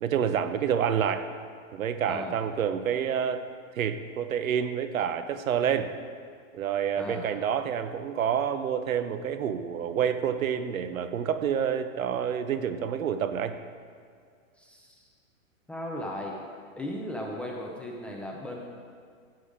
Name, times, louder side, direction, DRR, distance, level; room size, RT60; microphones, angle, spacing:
voice 1, 0.0-1.3 1.7-3.4 3.7-5.9 6.5-13.6, right 8 dB, 80° right, 10 dB, 1.1 m, -28 dB
voice 2, 2.1-2.4 7.0-7.3 14.6-15.1 15.7-16.4 16.8-18.6, left 1 dB, 5° left, -2 dB, 0.5 m, -36 dB
15.5 x 8.0 x 5.0 m, 2.1 s
hypercardioid pair, 145°, 41 cm